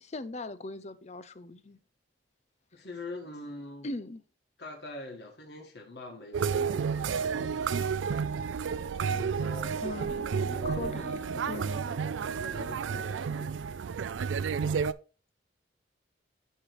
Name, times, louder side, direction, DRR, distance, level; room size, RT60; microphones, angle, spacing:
voice 1, 0.0-1.8 3.8-4.2 6.9-7.0 9.8-11.8, left 2 dB, 35° left, 0.6 m, -40 dB
voice 2, 2.7-3.9 4.6-8.0 9.1-11.0 11.3-13.6, left 2 dB, 60° left, 1.7 m, -44 dB
sound 1, 6.3-14.9, right 6 dB, 90° right, 0.4 m, -31 dB
10.0 x 3.4 x 4.6 m
head